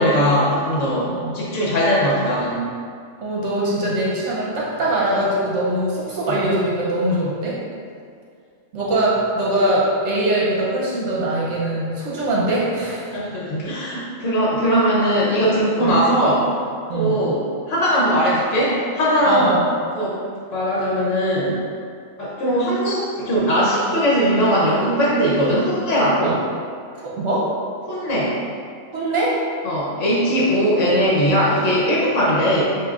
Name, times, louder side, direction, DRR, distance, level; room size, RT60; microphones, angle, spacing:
voice 1, 0.0-2.6 6.3-6.4 13.1-16.5 16.9-17.4 17.7-19.5 19.9-20.2 20.5-21.6 22.2-26.4 27.9-28.3 29.6-32.6, equal, 70° left, -5 dB, 1.1 m, -19 dB
voice 2, 1.1-1.4 3.2-7.6 8.7-13.2 15.8-16.0 16.9-17.2 19.2-19.7 26.2-26.4 27.0-27.5 28.9-29.3, right 1 dB, 65° right, -5 dB, 1.0 m, -22 dB
7.6 x 2.6 x 2.4 m, 2.3 s
omnidirectional pair, 1.4 m